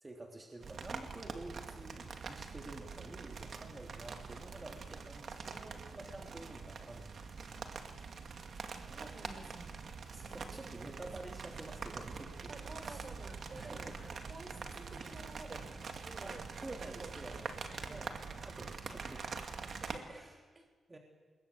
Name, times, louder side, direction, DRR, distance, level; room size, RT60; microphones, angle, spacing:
voice 1, 0.0-7.7 10.1-13.1 13.5-14.1 15.5-15.7 16.2-19.7 20.1-20.4 20.9-21.0, right 2 dB, 25° right, 1 dB, 3.4 m, -50 dB
sound 1, 0.6-20.0, right 5 dB, 60° right, 2.3 m, -45 dB
voice 2, 8.7-11.4 12.5-15.7 16.0-17.4 17.7-18.0 19.8-20.7, right 2 dB, 40° right, 8 dB, 4.2 m, -52 dB
27.0 x 21.5 x 8.6 m, 1.5 s
cardioid pair, 85°, 0 cm